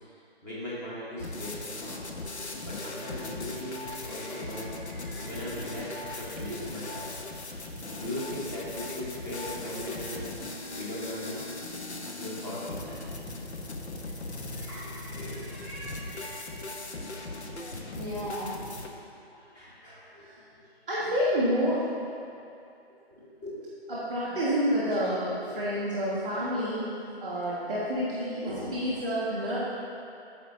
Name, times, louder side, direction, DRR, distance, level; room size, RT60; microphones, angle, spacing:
voice 1, 0.4-2.0 2.6-4.7 5.2-7.1 7.9-10.2 10.4-11.4 12.2-12.9 13.2-13.3 14.7-15.8 16.1-16.6 17.8-18.0 18.6-18.9 19.3-20.2 23.1-23.6 25.4-25.6 26.3-26.4, left 1 dB, 15° left, -8 dB, 1.2 m, -39 dB
sound 1, 1.2-18.9, left 2 dB, 85° left, 0.9 m, -39 dB
voice 2, 3.8-6.6 6.9-7.1 9.9-10.2 14.5-16.4 17.9-18.5 20.2-20.3 20.9-21.9 23.9-26.9 27.2-29.6, equal, 5° right, -17 dB, 0.5 m, -31 dB
13.5 x 5.0 x 2.7 m, 2.5 s
figure-of-eight pair, 150°, 33 cm